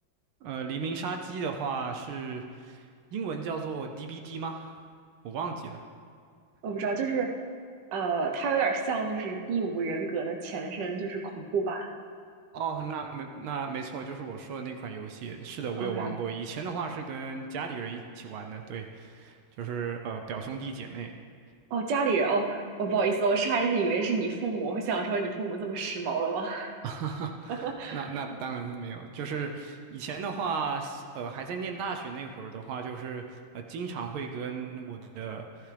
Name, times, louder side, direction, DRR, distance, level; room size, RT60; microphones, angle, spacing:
voice 1, 0.4-4.8 5.2-5.8 12.5-21.1 26.8-35.7, right 5 dB, 85° right, 4 dB, 1.6 m, -35 dB
voice 2, 6.6-7.3 7.9-11.9 15.8-16.1 21.7-26.7 27.5-28.1, right 4 dB, 65° right, 2 dB, 1.5 m, -29 dB
14.5 x 14.0 x 3.4 m, 2.1 s
omnidirectional pair, 2.2 m